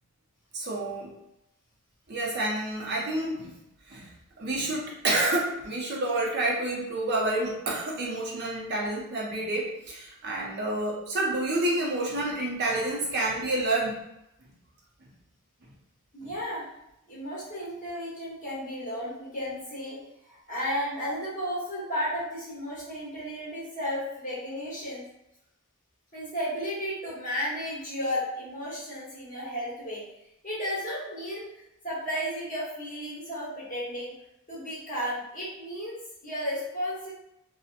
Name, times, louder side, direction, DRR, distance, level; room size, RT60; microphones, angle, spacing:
voice 1, 0.5-1.1 2.1-3.5 3.9-4.1 4.4-14.0, right 2 dB, 45° right, -4 dB, 0.5 m, -29 dB
voice 2, 16.1-16.7 17.1-20.0 20.3-25.0 26.1-30.0 30.4-34.1 34.5-37.1, equal, 35° left, -8 dB, 1.1 m, -33 dB
2.7 x 2.0 x 2.4 m, 0.85 s
head